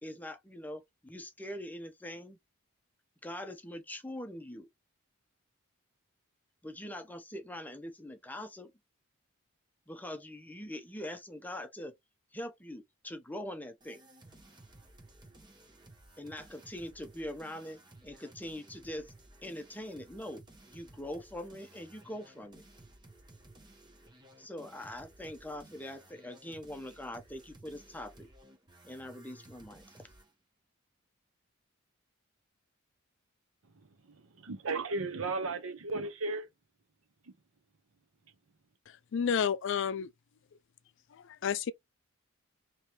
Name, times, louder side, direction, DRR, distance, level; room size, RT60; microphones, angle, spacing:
voice 1, 0.0-2.4 3.2-4.7 6.6-8.7 9.9-11.9 12.3-14.0 16.2-19.1 19.4-22.6 24.4-28.3 28.8-29.8, left 1 dB, 10° left, 0.7 m, -43 dB
sound 1, 13.8-30.3, right 1 dB, 20° right, 0.9 m, -57 dB
voice 2, 34.1-36.5, right 3 dB, 75° right, 0.8 m, -35 dB
voice 3, 39.1-40.1 41.2-41.7, left 7 dB, 60° left, 0.4 m, -30 dB
3.3 x 3.0 x 2.8 m
head